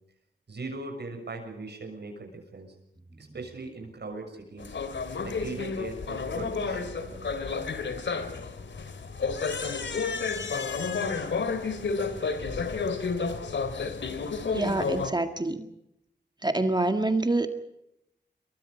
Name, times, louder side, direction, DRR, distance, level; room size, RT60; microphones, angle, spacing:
voice 1, 0.5-2.7 3.2-4.8 5.2-7.3, right 3 dB, 65° right, 4 dB, 6.8 m, -40 dB
sound 1, 4.6-15.1, left 4 dB, 90° left, 2.7 m, -31 dB
voice 2, 14.5-15.6 16.4-17.6, right 2 dB, 25° right, 7 dB, 1.8 m, -26 dB
28.0 x 24.0 x 5.1 m, 0.81 s
wide cardioid pair, 100°, 18 cm